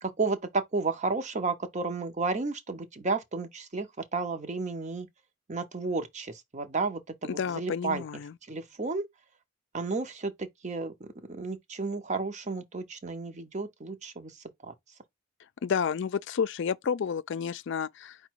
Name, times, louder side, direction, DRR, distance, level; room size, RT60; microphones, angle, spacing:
voice 1, 0.0-3.9 4.1-5.1 5.5-8.0 8.5-9.0 9.7-14.4 14.6-14.7, right 3 dB, 35° right, 0.7 m, -32 dB
voice 2, 7.3-8.3 15.6-18.2, left 6 dB, 55° left, 0.4 m, -30 dB
5.0 x 2.2 x 4.4 m
head